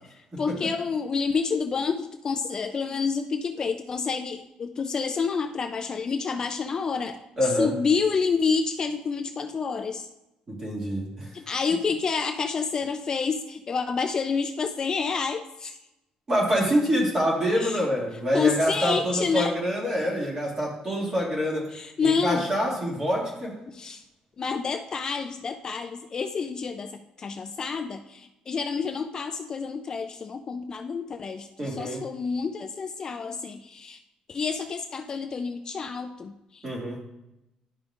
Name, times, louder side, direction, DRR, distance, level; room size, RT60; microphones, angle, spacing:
voice 1, 0.1-10.1 11.3-15.8 17.5-17.8 18.3-19.6 19.8-19.9 21.7-22.5 23.7-24.0 24.4-34.0 34.3-36.7, left 5 dB, 30° left, 6 dB, 0.3 m, -29 dB
voice 2, 7.4-7.7 10.5-11.3 16.3-21.7 22.0-23.5 31.6-32.0 36.6-37.0, equal, 25° right, -3 dB, 2.1 m, -26 dB
11.5 x 5.2 x 2.4 m, 0.91 s
cardioid pair, 165°, 2 cm